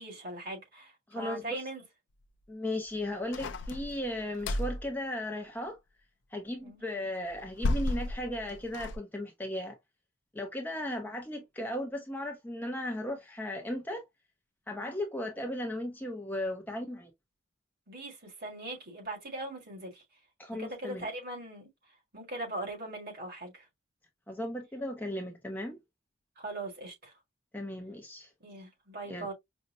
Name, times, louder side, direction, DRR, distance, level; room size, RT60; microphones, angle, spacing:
voice 1, 0.0-1.8 6.6-6.8 17.9-20.0 20.6-21.7 22.1-23.7 26.4-27.1 28.4-29.3, right 2 dB, 45° right, 1.6 m, -40 dB
voice 2, 1.1-1.6 2.5-5.8 6.3-9.8 10.3-14.0 14.7-17.1 20.4-21.1 24.3-25.8 27.5-28.3 29.1-29.3, left 1 dB, 10° left, 0.6 m, -36 dB
sound 1, 3.3-4.9 7.3-9.0, left 2 dB, 55° left, 0.4 m, -33 dB
5.3 x 2.1 x 2.5 m
head